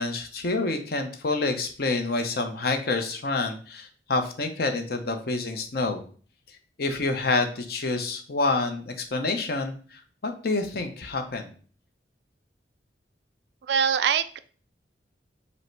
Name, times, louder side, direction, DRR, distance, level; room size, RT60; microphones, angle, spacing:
voice 1, 0.0-6.0 6.8-11.5, left 3 dB, 55° left, 6 dB, 0.7 m, -28 dB
voice 2, 13.7-14.4, right 7 dB, 65° right, 13 dB, 0.3 m, -23 dB
5.3 x 2.1 x 4.5 m, 0.42 s
head